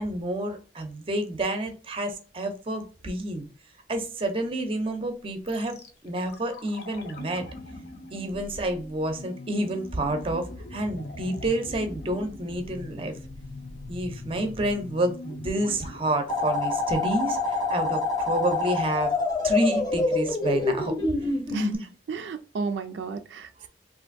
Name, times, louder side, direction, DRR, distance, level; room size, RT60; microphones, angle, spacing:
voice 1, 0.0-3.5 3.9-7.5 8.1-13.1 13.9-19.2 19.4-20.9 23.6-23.7, right 1 dB, 30° right, 6 dB, 0.6 m, -29 dB
sound 1, 5.5-17.5 17.7-17.8, left 2 dB, 65° left, 0.6 m, -42 dB
sound 2, 16.3-21.8, left 3 dB, 25° left, 0.7 m, -26 dB
voice 2, 21.5-23.7, right 4 dB, 80° right, 7 dB, 0.3 m, -33 dB
3.3 x 2.5 x 2.5 m, 0.36 s
head